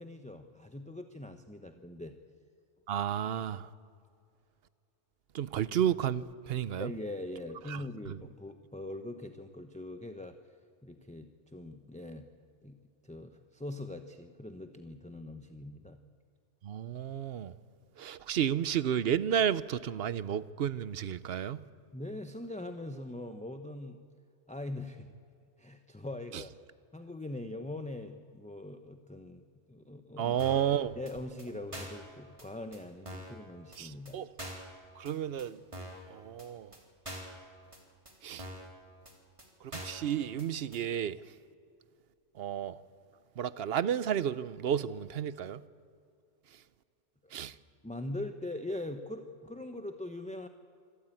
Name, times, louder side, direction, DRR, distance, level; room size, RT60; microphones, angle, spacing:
voice 1, 0.0-2.1 6.8-10.4 10.8-12.3 12.6-12.8 13.0-16.0 21.9-24.0 24.5-25.1 25.6-26.5 26.9-29.4 29.7-30.4 31.0-34.2 47.2-47.3 47.8-50.5, left 1 dB, 5° left, 0.7 m, -42 dB
voice 2, 2.9-3.7 5.3-6.9 7.7-7.8 8.1-8.2 16.6-17.5 18.0-21.6 26.3-26.4 30.2-31.0 33.8-34.6 35.0-35.6 36.1-36.7 38.2-38.5 39.6-41.2 42.4-42.8 43.4-45.6 47.3-47.5, right 9 dB, 60° right, 0.9 m, -32 dB
sound 1, 30.4-30.7 31.1-31.2 31.4-31.5 31.7-32.1 32.4-32.5 32.7-32.8 33.1-33.4 33.7-33.8 34.1-34.2 34.4-34.7 35.1-35.2 35.4-35.5 35.7-36.0 36.4-36.5 36.7-36.8 37.1-37.4 37.7-37.8 38.1-38.2 38.4-38.7 39.1-39.2 39.4-39.5 39.7-40.1 40.4-40.5 40.7-40.8, equal, 25° right, 3.3 m, -44 dB
25.5 x 13.5 x 9.0 m
omnidirectional pair, 1.2 m